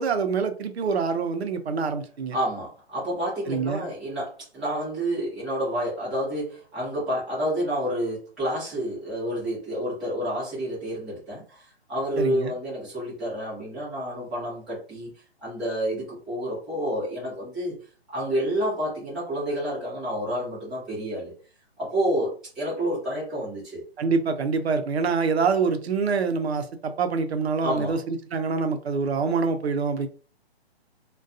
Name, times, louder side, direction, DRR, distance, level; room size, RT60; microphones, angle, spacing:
voice 1, 0.0-2.4 3.5-3.8 12.2-12.5 24.0-30.1, right 5 dB, 75° right, 8 dB, 0.6 m, -25 dB
voice 2, 2.3-15.1 15.4-17.8 18.1-21.3 21.8-23.8 27.6-28.0, equal, ahead, -13 dB, 0.5 m, -29 dB
2.3 x 2.2 x 2.4 m, 0.39 s
hypercardioid pair, 155°, 32 cm